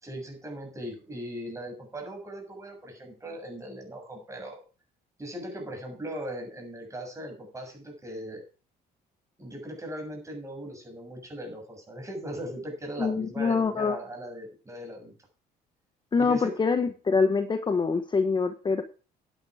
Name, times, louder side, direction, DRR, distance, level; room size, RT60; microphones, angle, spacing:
voice 1, 0.0-4.6 5.2-8.4 9.4-15.1 16.2-16.6, equal, 20° right, 2 dB, 7.0 m, -39 dB
voice 2, 13.0-14.0 16.1-18.8, left 4 dB, 25° left, 8 dB, 1.2 m, -25 dB
10.5 x 10.0 x 5.0 m, 0.35 s
cardioid pair, 110°, 17 cm